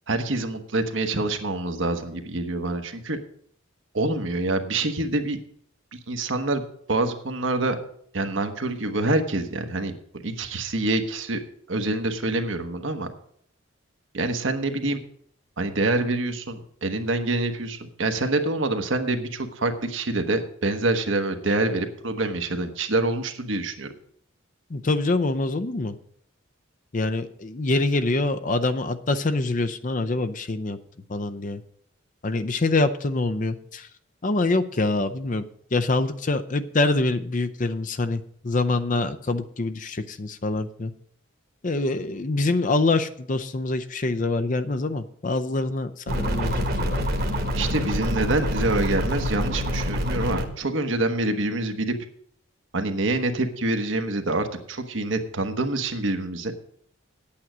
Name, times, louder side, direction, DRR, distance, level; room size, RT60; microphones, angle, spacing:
voice 1, 0.1-3.2 3.9-5.4 5.9-6.6 6.9-7.7 8.1-9.9 10.2-11.4 11.7-13.1 14.1-15.0 15.6-23.9 47.5-52.0 52.7-56.5, right 2 dB, 70° right, 6 dB, 1.1 m, -26 dB
voice 2, 24.7-26.0 26.9-30.8 31.1-31.6 32.2-33.9 34.2-35.4 35.7-40.9 41.6-47.0, left 2 dB, 40° left, 10 dB, 0.6 m, -25 dB
sound 1, 46.1-50.5, equal, 50° right, 1.3 m, -26 dB
9.1 x 8.7 x 6.1 m, 0.65 s
head